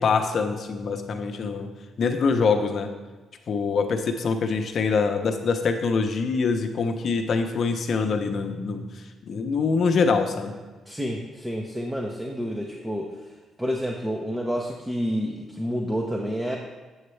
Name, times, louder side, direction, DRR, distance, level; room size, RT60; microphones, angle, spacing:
voice 1, 0.0-1.7 2.0-2.9 3.5-8.9 9.2-10.5, left 4 dB, 55° left, 5 dB, 0.7 m, -24 dB
voice 2, 10.9-13.1 13.6-16.6, equal, 10° right, 0 dB, 0.7 m, -29 dB
7.9 x 6.5 x 3.3 m, 1.3 s
cardioid pair, 90°, 0 cm